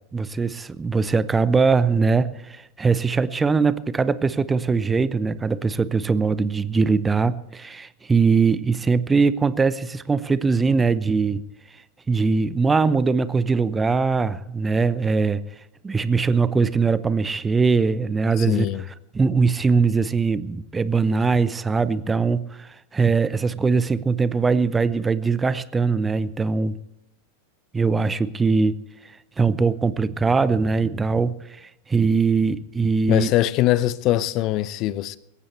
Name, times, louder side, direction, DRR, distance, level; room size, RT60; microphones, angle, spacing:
voice 1, 0.1-11.4 12.1-15.4 15.8-18.7 19.1-26.8 27.7-28.8 29.4-33.3, right 4 dB, 15° right, 0.8 m, -21 dB
voice 2, 18.4-18.8 33.1-35.2, left 15 dB, 40° left, 0.7 m, -22 dB
22.0 x 18.5 x 3.3 m
figure-of-eight pair, 90°, 0 cm